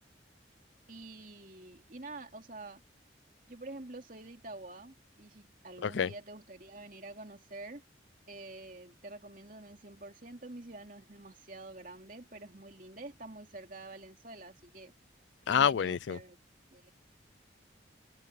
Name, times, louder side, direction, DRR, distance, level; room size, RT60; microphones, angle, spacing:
voice 1, 0.9-2.8 3.5-7.8 8.3-14.9 15.5-16.4 16.7-16.9, right 2 dB, 45° right, 2.8 m, -47 dB
voice 2, 15.5-16.2, left 7 dB, 75° left, 0.4 m, -27 dB
head